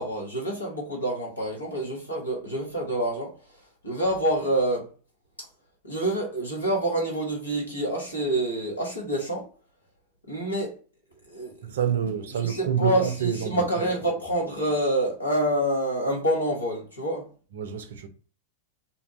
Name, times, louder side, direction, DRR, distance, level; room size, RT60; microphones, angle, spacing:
voice 1, 0.0-3.3 3.8-4.9 5.8-9.4 10.3-10.8 11.3-11.7 12.4-17.3, right 1 dB, 80° left, 1.0 m, -27 dB
voice 2, 11.6-13.9 17.5-18.1, right 8 dB, 60° right, 0.4 m, -28 dB
2.7 x 2.2 x 2.5 m
figure-of-eight pair, 90°, 0 cm